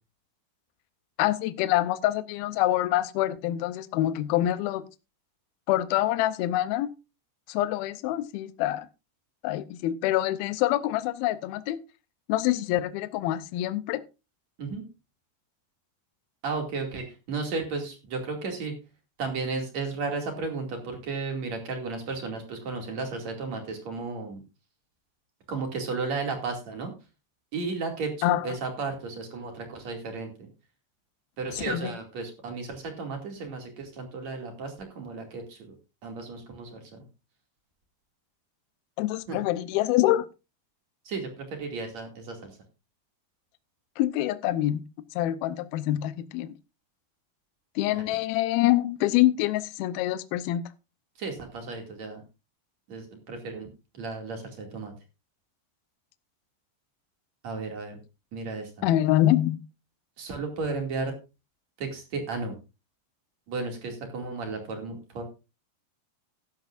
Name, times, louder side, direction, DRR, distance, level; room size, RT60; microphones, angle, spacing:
voice 1, 1.2-4.8 5.7-6.9 7.5-8.9 9.4-11.8 12.3-14.0 28.2-28.5 31.6-31.9 39.0-40.3 44.0-44.8 45.2-46.5 47.8-50.6 58.8-59.6, left 14 dB, 75° left, 2.4 m, -25 dB
voice 2, 16.4-18.7 19.2-24.4 25.5-26.9 27.5-30.5 31.4-35.7 36.0-37.0 39.3-39.4 41.0-42.5 47.9-48.0 51.2-52.2 52.9-53.7 53.9-54.9 57.4-58.0 58.3-58.7 60.2-61.1 61.8-62.5 63.5-65.2, right 4 dB, 45° right, 3.1 m, -34 dB
15.0 x 11.5 x 2.5 m
omnidirectional pair, 4.9 m